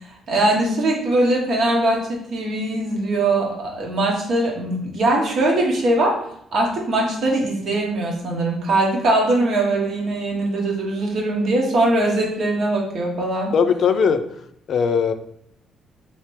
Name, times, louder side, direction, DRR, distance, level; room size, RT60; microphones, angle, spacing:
voice 1, 0.3-6.1 6.5-13.5, right 2 dB, 65° right, -1 dB, 1.0 m, -21 dB
voice 2, 13.5-14.2 14.7-15.1, left 6 dB, 65° left, 9 dB, 0.3 m, -18 dB
3.2 x 2.8 x 3.1 m, 0.72 s
cardioid pair, 90°, 0 cm